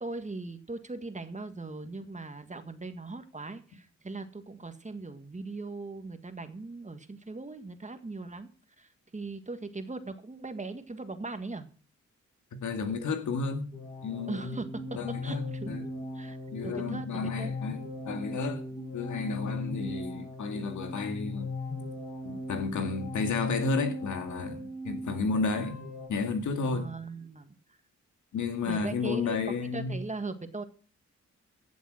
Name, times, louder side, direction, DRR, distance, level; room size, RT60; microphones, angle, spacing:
voice 1, 0.0-8.5 8.8-11.7 14.3-14.7 15.2-15.7 16.1-16.4 16.6-17.5 26.7-27.5 28.7-30.6, right 3 dB, 25° right, 1.8 m, -39 dB
voice 2, 12.5-13.7 14.0-14.6 15.0-15.9 16.5-17.8 18.1-18.6 18.9-21.5 22.2-25.8 26.1-26.9 28.3-30.0, left 4 dB, 80° left, 2.1 m, -32 dB
sound 1, 13.7-26.1, left 2 dB, 30° left, 6.8 m, -38 dB
15.0 x 7.3 x 6.4 m
cardioid pair, 70°, 29 cm